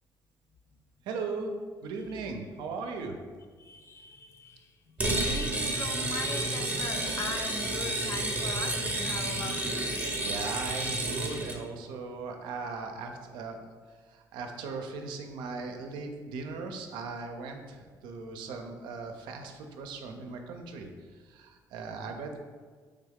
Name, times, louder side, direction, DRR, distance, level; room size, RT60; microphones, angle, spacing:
voice 1, 1.0-1.5 1.8-3.2 10.2-13.6 14.1-22.4, right 4 dB, 80° right, 4 dB, 0.4 m, -38 dB
voice 2, 3.6-5.0 5.2-10.0, left 4 dB, 40° left, 6 dB, 0.3 m, -40 dB
sound 1, 5.0-11.6, right 2 dB, 20° right, 0.6 m, -31 dB
3.3 x 2.3 x 3.4 m, 1.5 s
supercardioid pair, 85°, 8 cm